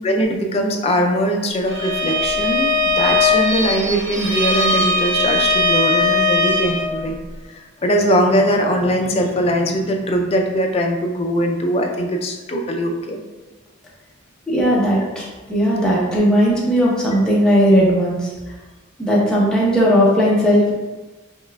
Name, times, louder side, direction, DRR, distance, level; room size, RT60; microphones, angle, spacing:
voice 1, 0.0-7.2 7.5-13.2, equal, 30° left, 2 dB, 0.3 m, -21 dB
Bowed string instrument, 1.7-6.9, left 2 dB, 75° right, 0.8 m, -19 dB
voice 2, 14.5-18.3 19.0-20.7, equal, 5° left, -6 dB, 0.7 m, -16 dB
5.3 x 2.3 x 2.3 m, 1.2 s
head